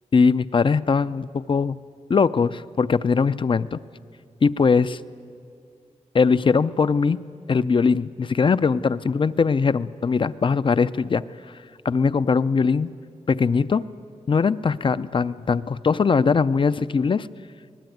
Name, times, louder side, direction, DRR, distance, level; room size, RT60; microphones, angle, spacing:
voice 1, 0.1-1.8 2.1-3.8 4.4-5.0 6.1-7.2 7.5-11.2 11.8-12.9 13.3-13.8 14.3-17.3, left 5 dB, 40° left, 15 dB, 0.5 m, -20 dB
23.5 x 19.5 x 9.3 m, 2.3 s
wide cardioid pair, 125°, 13 cm